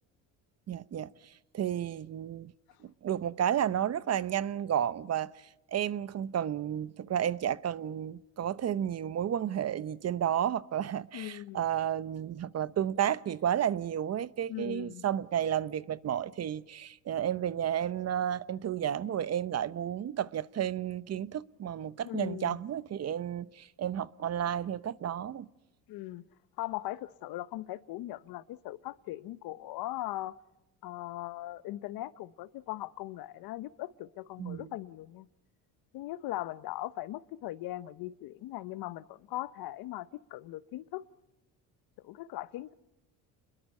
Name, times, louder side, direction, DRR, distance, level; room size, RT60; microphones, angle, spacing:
voice 1, 0.7-2.5 2.8-25.5 34.4-34.7, right 10 dB, 40° right, 0.9 m, -32 dB
voice 2, 11.1-11.6 14.5-15.0 22.0-22.6 25.9-26.2 26.6-30.3 30.8-35.3 35.9-41.0 42.0-42.7, left 15 dB, 70° left, 1.0 m, -39 dB
30.0 x 22.0 x 5.5 m
supercardioid pair, 95°, 37 cm